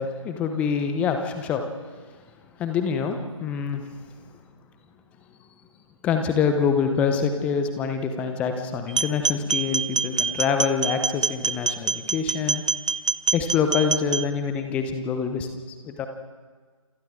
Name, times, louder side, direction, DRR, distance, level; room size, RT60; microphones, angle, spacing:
voice 1, 0.0-1.6 2.6-3.8 6.0-12.6 13.3-15.5 15.8-16.1, left 6 dB, 5° left, 6 dB, 0.9 m, -25 dB
sound 1, 8.9-14.2, right 5 dB, 60° right, 0.9 m, -25 dB
28.0 x 27.0 x 3.7 m, 1.5 s
figure-of-eight pair, 150°, 17 cm